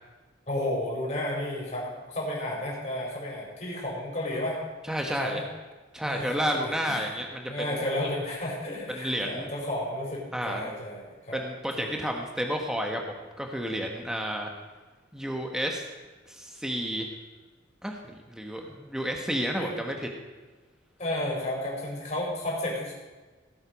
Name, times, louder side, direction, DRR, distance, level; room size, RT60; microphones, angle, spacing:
voice 1, 0.5-4.6 5.1-5.4 6.0-7.1 7.5-11.4 11.7-12.1 19.6-19.7 21.0-22.9, left 1 dB, 35° left, -3 dB, 4.3 m, -32 dB
voice 2, 4.9-5.4 5.9-7.8 8.9-9.5 10.3-10.7 11.3-13.0 13.4-14.5 15.1-15.8 16.3-17.1 17.8-20.1, equal, 5° right, 2 dB, 1.2 m, -31 dB
17.5 x 7.9 x 5.2 m, 1.3 s
head